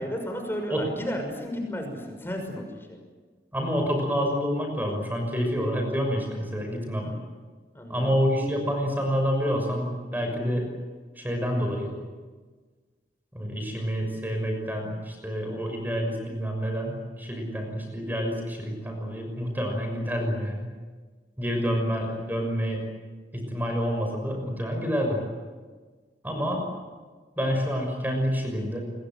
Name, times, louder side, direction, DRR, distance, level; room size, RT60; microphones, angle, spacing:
voice 1, 0.0-3.0 7.0-7.2 7.7-8.2, equal, 15° left, 4 dB, 6.1 m, -33 dB
voice 2, 3.5-7.0 7.9-10.7 11.2-12.0 13.3-20.7 21.4-22.8 23.3-25.2 26.2-26.6 27.4-28.8, equal, 10° right, 2 dB, 6.2 m, -28 dB
28.0 x 22.5 x 7.6 m, 1.4 s
head